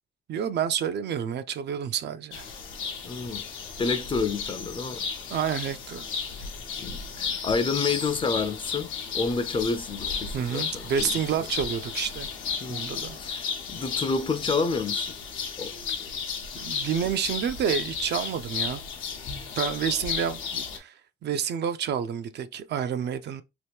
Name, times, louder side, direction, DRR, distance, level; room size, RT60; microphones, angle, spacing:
voice 1, 0.3-2.5 5.3-6.1 10.3-12.3 12.7-13.2 15.9-16.0 16.6-18.8 19.6-20.9 21.2-23.4, right 8 dB, 60° right, 0.4 m, -29 dB
sound 1, 2.3-20.8, left 6 dB, 80° left, 0.8 m, -34 dB
voice 2, 3.0-3.4 3.8-5.1 6.8-11.1 12.6-12.9 13.2-15.2 15.6-15.8, left 4 dB, 25° left, 0.4 m, -29 dB
2.9 x 2.2 x 3.4 m
cardioid pair, 90°, 20 cm